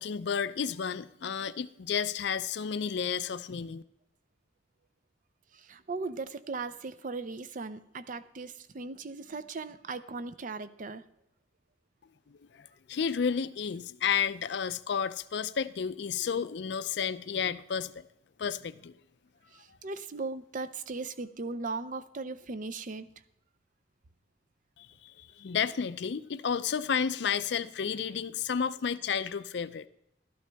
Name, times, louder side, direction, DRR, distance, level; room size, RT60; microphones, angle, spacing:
voice 1, 0.0-3.8 12.5-18.0 18.4-18.9 24.8-29.9, left 7 dB, 65° left, 0.4 m, -32 dB
voice 2, 5.5-11.0 19.5-23.1, right 3 dB, 45° right, 0.6 m, -38 dB
13.0 x 12.0 x 3.4 m
head